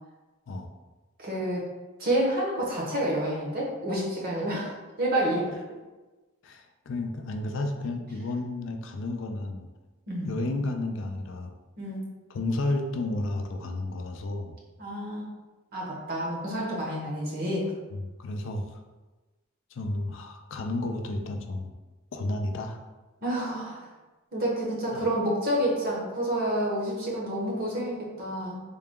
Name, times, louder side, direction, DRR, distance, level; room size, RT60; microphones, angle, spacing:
voice 1, 1.2-1.7 2.0-4.7 5.0-5.5 10.1-10.3 11.8-12.0 14.8-15.3 15.7-17.7 23.2-23.8 24.3-28.6, right 1 dB, 45° right, -3 dB, 0.9 m, -29 dB
voice 2, 6.4-9.7 10.3-11.5 12.3-14.6 17.9-18.8 19.7-21.7 22.1-22.8 24.9-25.1, left 2 dB, 60° left, 5 dB, 0.4 m, -32 dB
3.8 x 2.2 x 3.6 m, 1.2 s
head